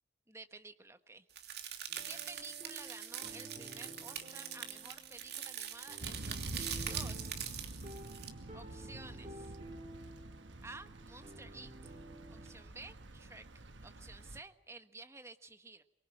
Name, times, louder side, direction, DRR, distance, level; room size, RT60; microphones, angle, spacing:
voice 1, 0.3-1.3 1.7-7.5 8.5-9.5 10.6-12.0 12.3-13.4 13.8-15.8, right 3 dB, 15° right, 8 dB, 1.3 m, -53 dB
sound 1, 1.4-8.3, right 9 dB, 60° right, 2.8 m, -43 dB
sound 2, 1.9-12.6, right 1 dB, 35° right, 3.9 m, -53 dB
Thunder / Rain, 6.0-14.4, right 1 dB, 80° right, 1.3 m, -47 dB
23.5 x 23.5 x 8.8 m, 0.86 s
head